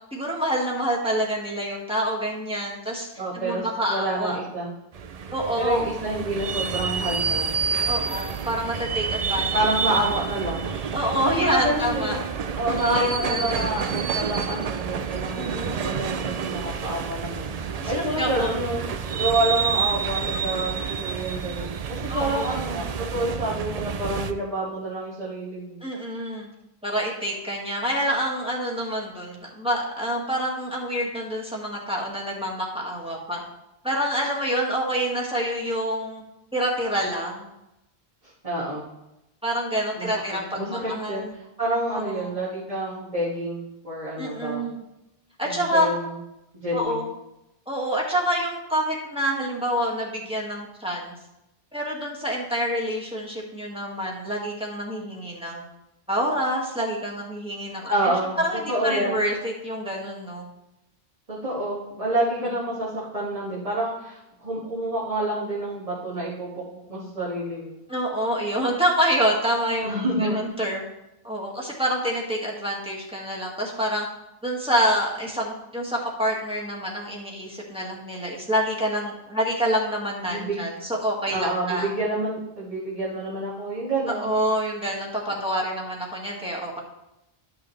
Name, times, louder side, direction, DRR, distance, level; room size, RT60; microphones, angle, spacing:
voice 1, 0.1-3.1 3.3-4.4 5.3-5.9 7.9-9.6 10.0-10.1 10.9-12.2 12.7-13.8 15.4-15.8 17.8-18.6 22.1-22.8 25.8-26.5 26.8-33.4 33.8-36.2 36.5-37.4 39.4-41.3 41.9-42.4 44.2-44.8 45.4-45.9 46.7-47.1 47.7-51.2 51.7-55.6 56.1-60.5 67.9-70.8 71.2-74.1 74.4-81.9 84.1-86.8, equal, 5° right, -4 dB, 1.9 m, -27 dB
voice 2, 3.2-4.7 5.6-7.6 9.5-10.6 11.2-12.2 12.5-18.8 19.2-25.8 38.4-38.8 40.0-40.1 40.6-41.2 41.6-44.7 45.4-46.2 46.5-47.0 57.9-58.4 58.7-59.2 61.3-66.6 66.9-67.7 69.8-70.4 80.3-80.6 81.3-84.3 85.3-85.4, right 1 dB, 35° right, -8 dB, 2.1 m, -28 dB
sound 1, 4.9-24.3, right 6 dB, 50° right, 0.5 m, -29 dB
12.0 x 6.1 x 3.2 m, 0.89 s
omnidirectional pair, 1.1 m